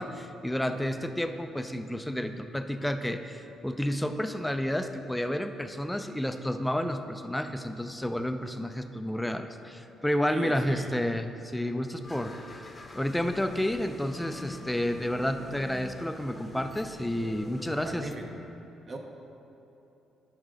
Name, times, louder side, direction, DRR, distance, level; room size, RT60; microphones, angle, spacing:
voice 1, 0.0-12.6 12.9-18.1, equal, 5° left, 8 dB, 0.4 m, -31 dB
voice 2, 10.3-11.0 17.8-18.5 18.9-19.0, right 2 dB, 40° right, 2 dB, 0.8 m, -38 dB
sound 1, 12.0-18.1, left 1 dB, 25° left, 0.8 m, -46 dB
10.5 x 3.6 x 5.0 m, 2.9 s
cardioid pair, 90°, 0 cm